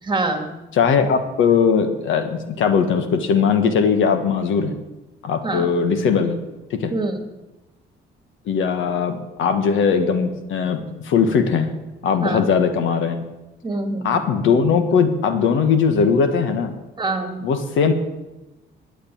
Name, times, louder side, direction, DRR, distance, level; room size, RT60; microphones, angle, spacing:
voice 1, 0.0-0.6 5.4-5.7 6.9-7.2 12.2-12.4 13.6-14.2 17.0-17.4, right 2 dB, 25° right, 5 dB, 2.1 m, -25 dB
voice 2, 0.7-4.7 5.2-6.4 6.7-6.9 8.5-11.7 12.0-13.2 14.0-16.7 17.4-17.9, left 6 dB, 80° left, 8 dB, 1.4 m, -19 dB
12.0 x 8.1 x 8.6 m, 1.0 s
cardioid pair, 90°, 20 cm